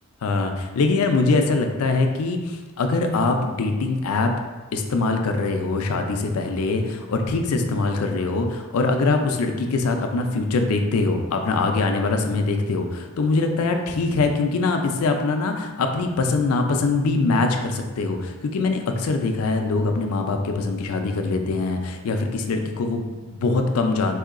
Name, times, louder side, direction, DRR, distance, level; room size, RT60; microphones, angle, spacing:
voice 1, 0.2-4.3 4.7-24.2, left 3 dB, 75° left, 5 dB, 0.4 m, -23 dB
3.8 x 2.7 x 2.4 m, 1.2 s
head